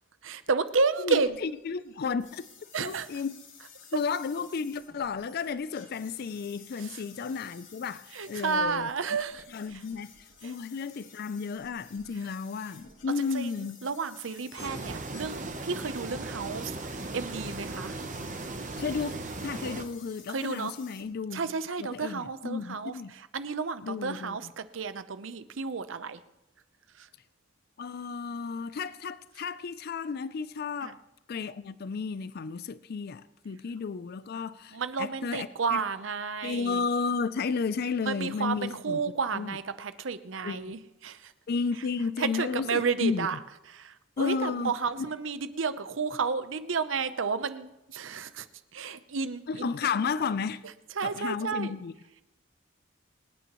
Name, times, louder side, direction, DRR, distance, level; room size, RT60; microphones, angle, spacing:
voice 1, 0.2-1.4 2.7-3.1 8.1-9.4 13.3-13.5 13.8-16.7 17.1-18.0 20.3-20.7 21.3-22.9 23.3-26.2 30.8-30.9 34.7-36.8 38.1-41.3 42.2-43.4 43.8-48.5 48.7-49.8 51.0-51.7, right 5 dB, 80° right, 0.7 m, -31 dB
voice 2, 1.0-2.4 2.8-3.4 3.9-8.9 9.5-10.1 10.4-13.8 18.8-19.1 19.4-21.5 21.8-23.1 23.8-24.5 27.8-31.0 31.3-35.8 36.4-39.0 39.3-39.6 40.4-40.8 41.5-43.3 44.2-45.1 49.5-50.6 51.0-51.9, left 5 dB, 55° left, 0.4 m, -33 dB
sound 1, 1.3-21.0, left 6 dB, 70° left, 2.6 m, -53 dB
sound 2, 14.6-19.8, right 2 dB, 40° right, 0.9 m, -37 dB
25.5 x 9.5 x 3.0 m
head